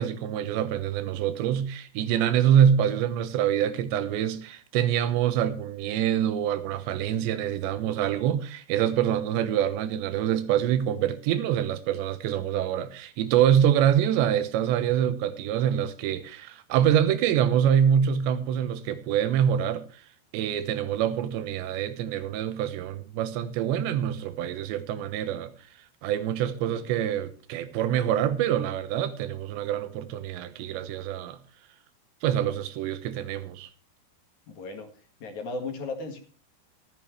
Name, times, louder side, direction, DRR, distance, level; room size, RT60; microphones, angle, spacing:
voice 1, 0.0-20.0 20.3-25.5 26.0-31.4 32.2-33.7, right 9 dB, 85° right, 3.3 m, -25 dB
voice 2, 26.4-26.9 34.5-34.9 35.2-36.2, left 3 dB, 50° left, 2.7 m, -36 dB
15.0 x 14.0 x 3.3 m
omnidirectional pair, 5.1 m